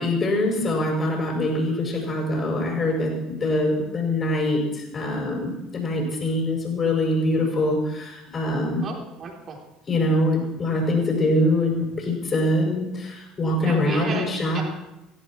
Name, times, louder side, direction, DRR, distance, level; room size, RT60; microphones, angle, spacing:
voice 1, 0.0-8.9 9.9-14.6, left 1 dB, 35° left, -2 dB, 6.5 m, -24 dB
voice 2, 8.8-9.6 13.6-14.6, right 5 dB, 40° right, 1 dB, 3.8 m, -33 dB
17.5 x 16.0 x 4.5 m, 0.93 s
figure-of-eight pair, 60°, 0 cm